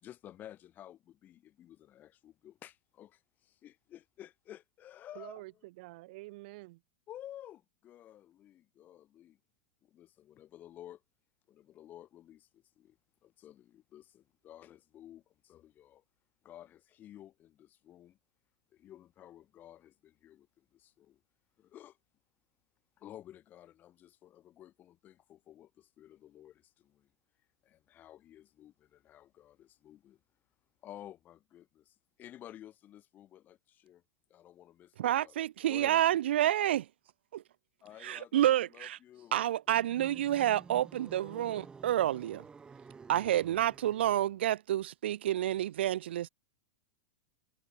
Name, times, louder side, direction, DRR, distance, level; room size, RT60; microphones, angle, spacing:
voice 1, 0.0-5.4 7.1-9.4 9.8-11.0 11.5-13.0 13.2-16.0 16.4-18.2 18.7-21.2 21.6-22.0 23.0-27.1 27.6-30.2 30.8-34.0 34.3-35.3 35.7-36.2 37.8-39.4 40.1-40.7, left 12 dB, 30° left, 2.8 m, -53 dB
voice 2, 5.1-6.8, right 21 dB, 60° right, 3.0 m, -48 dB
voice 3, 35.0-36.8 37.3-37.4 38.0-39.0 39.3-42.4 43.1-46.3, right 12 dB, 80° right, 0.5 m, -29 dB
sound 1, 39.7-44.3, right 5 dB, 15° right, 2.7 m, -52 dB
hypercardioid pair, 130°, 6 cm